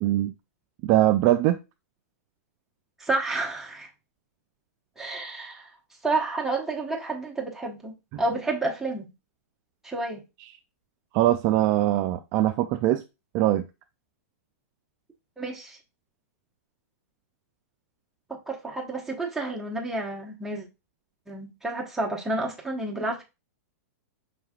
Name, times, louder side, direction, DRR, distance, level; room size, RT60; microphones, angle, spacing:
voice 1, 0.0-0.3 0.8-1.6 8.1-8.2 11.1-13.0 13.3-13.6, right 14 dB, 35° right, 0.3 m, -22 dB
voice 2, 3.0-3.9 5.0-5.7 6.0-9.1 9.8-10.2 15.4-15.8 18.3-20.7 21.3-23.2, right 2 dB, 5° right, 1.1 m, -30 dB
5.4 x 3.3 x 2.4 m
hypercardioid pair, 140°, 8 cm